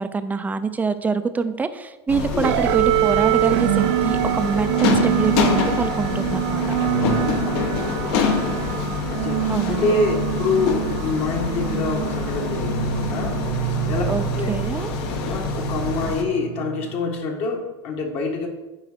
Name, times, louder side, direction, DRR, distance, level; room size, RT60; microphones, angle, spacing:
voice 1, 0.0-6.6 9.5-9.9 14.1-14.9, right 4 dB, 10° right, 11 dB, 0.5 m, -25 dB
sound 1, 2.1-16.2, left 5 dB, 65° left, 1.6 m, -26 dB
sound 2, 2.4-17.2, right 16 dB, 70° right, 0.4 m, -25 dB
voice 2, 6.8-7.5 9.0-13.4 13.9-14.0 14.3-14.5 15.2-18.5, left 3 dB, 45° left, 1 dB, 1.7 m, -26 dB
9.3 x 4.0 x 6.6 m, 1.1 s
supercardioid pair, 120°, 14 cm